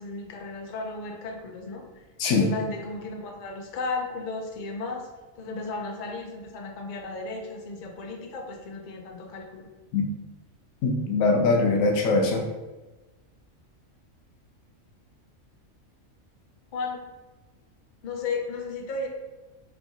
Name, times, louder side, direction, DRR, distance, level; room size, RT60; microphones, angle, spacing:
voice 1, 0.0-1.8 2.4-5.1 5.4-9.7 16.7-17.0 18.0-19.1, left 3 dB, 55° left, 2 dB, 0.5 m, -34 dB
voice 2, 2.2-2.5 9.9-10.0 10.8-12.4, left 3 dB, 90° left, 2 dB, 1.1 m, -22 dB
4.4 x 2.7 x 2.7 m, 1.2 s
omnidirectional pair, 1.4 m